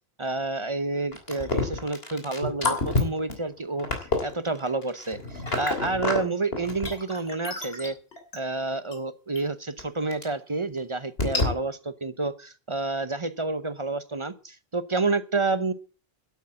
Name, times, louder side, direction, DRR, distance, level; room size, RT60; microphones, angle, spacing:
voice 1, 0.2-8.0 8.3-15.7, right 3 dB, 30° right, 13 dB, 0.9 m, -29 dB
sound 1, 1.1-6.2 6.5-8.4 8.9-9.0 9.4-9.5 9.8-9.9 10.1-10.2 10.8-10.9 11.2-11.5, left 2 dB, 75° left, 3.4 m, -28 dB
12.0 x 8.3 x 8.7 m, 0.37 s
omnidirectional pair, 1.0 m